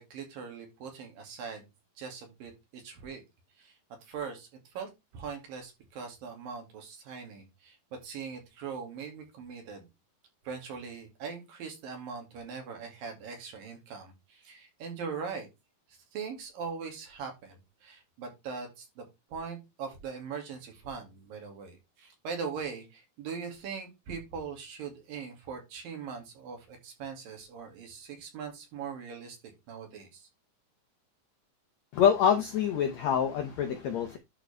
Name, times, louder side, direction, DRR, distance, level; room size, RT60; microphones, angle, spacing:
voice 1, 0.0-1.7 2.0-3.2 3.6-9.9 10.4-15.5 15.9-30.3, right 6 dB, 65° right, 3.9 m, -41 dB
voice 2, 31.9-34.2, left 8 dB, 70° left, 1.6 m, -26 dB
11.5 x 4.9 x 3.4 m
omnidirectional pair, 4.3 m